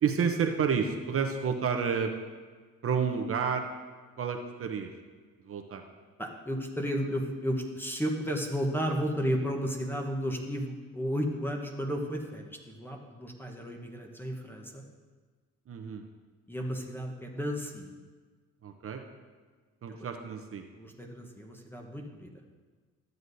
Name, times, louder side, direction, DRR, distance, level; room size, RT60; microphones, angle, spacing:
voice 1, 0.0-2.1 2.8-3.7 4.2-4.9 5.5-5.8 15.7-16.0 18.6-19.0 19.8-20.6, right 6 dB, 45° right, 4 dB, 0.7 m, -30 dB
voice 2, 6.2-14.8 16.5-17.9 19.9-20.1 20.7-22.3, equal, 5° left, 2 dB, 1.0 m, -33 dB
12.5 x 8.0 x 2.7 m, 1.4 s
cardioid pair, 90°, 30 cm